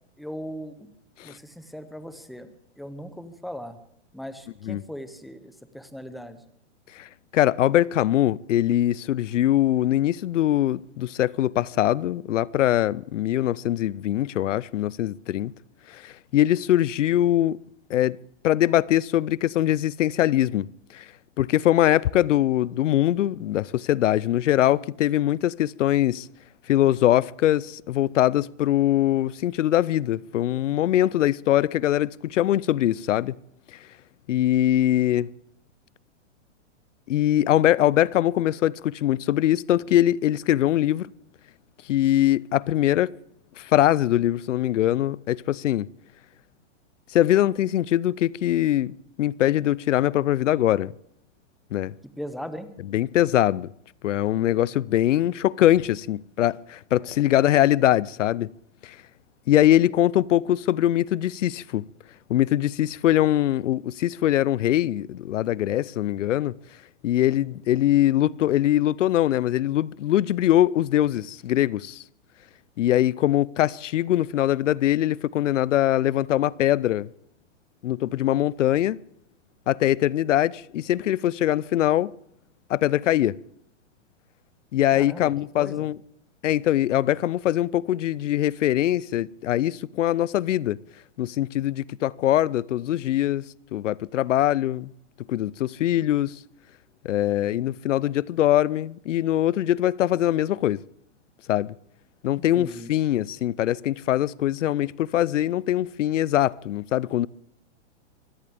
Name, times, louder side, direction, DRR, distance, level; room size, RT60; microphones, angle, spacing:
voice 1, 0.2-0.9 1.2-2.5 2.8-3.8 4.1-6.4 52.2-52.7 84.9-85.3 85.6-85.9 102.3-102.9, equal, ahead, 0.7 m, -38 dB
voice 2, 6.9-15.5 15.9-17.6 17.9-18.2 18.4-20.7 20.9-21.1 21.4-26.3 26.7-33.3 34.3-35.3 37.1-41.1 41.9-43.2 43.6-45.9 47.1-50.9 51.7-51.9 52.8-53.7 54.0-58.5 58.8-59.0 59.5-61.8 62.3-66.5 67.0-72.0 72.8-77.1 77.8-79.0 79.7-82.1 82.7-83.4 84.7-86.0 86.4-90.8 91.2-93.4 93.7-94.9 95.3-96.4 97.0-100.8 101.5-101.7 102.2-107.3, left 13 dB, 90° left, 0.6 m, -22 dB
24.0 x 17.5 x 3.5 m
hypercardioid pair, 150°, 36 cm